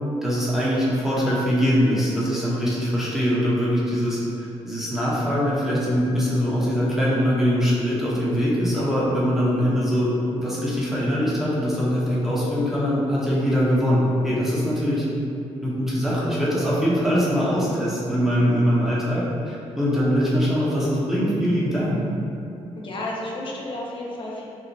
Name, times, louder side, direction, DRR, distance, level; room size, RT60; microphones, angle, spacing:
voice 1, 0.2-15.1 15.6-22.0, equal, 5° right, -8 dB, 0.7 m, -22 dB
voice 2, 22.7-24.5, left 1 dB, 45° left, -3 dB, 0.6 m, -32 dB
2.9 x 2.0 x 2.6 m, 2.6 s
cardioid pair, 65°, 12 cm